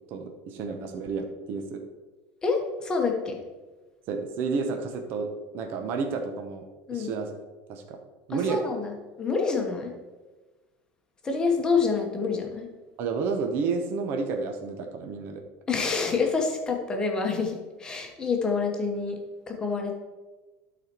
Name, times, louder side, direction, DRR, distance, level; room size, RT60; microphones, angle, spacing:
voice 1, 0.1-1.8 4.1-6.7 6.9-7.3 7.7-8.0 8.3-8.6 13.0-15.4, right 4 dB, 45° right, 5 dB, 0.8 m, -31 dB
voice 2, 2.4-3.4 6.9-7.1 8.3-8.9 9.2-9.9 11.2-12.7 15.7-19.2 19.5-19.9, left 4 dB, 15° left, 2 dB, 1.1 m, -27 dB
12.0 x 4.2 x 4.5 m, 1.2 s
cardioid pair, 170°, 5 cm